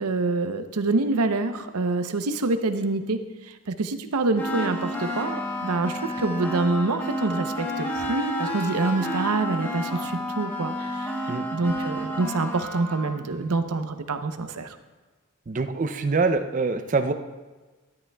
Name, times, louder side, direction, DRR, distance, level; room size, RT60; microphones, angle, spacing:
voice 1, 0.0-11.1 11.5-14.8, right 3 dB, 85° right, 9 dB, 0.7 m, -26 dB
sound 1, 4.4-13.2, equal, 10° left, 0.9 m, -30 dB
voice 2, 15.5-17.1, right 3 dB, 35° right, 9 dB, 0.4 m, -24 dB
13.5 x 10.5 x 2.3 m, 1.2 s
head